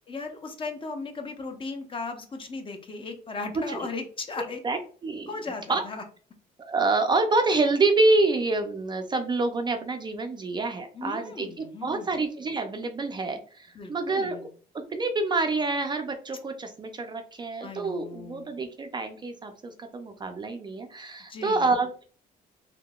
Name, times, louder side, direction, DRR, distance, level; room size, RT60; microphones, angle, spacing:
voice 1, 0.1-4.6 5.3-6.0 10.9-12.2 13.7-14.5 17.6-18.5 21.3-21.7, left 3 dB, 30° left, 5 dB, 0.7 m, -37 dB
voice 2, 4.6-5.3 5.7-5.8 6.6-14.5 14.7-22.0, right 3 dB, 25° right, 6 dB, 0.4 m, -27 dB
3.7 x 2.7 x 2.3 m, 0.42 s
cardioid pair, 110°, 17 cm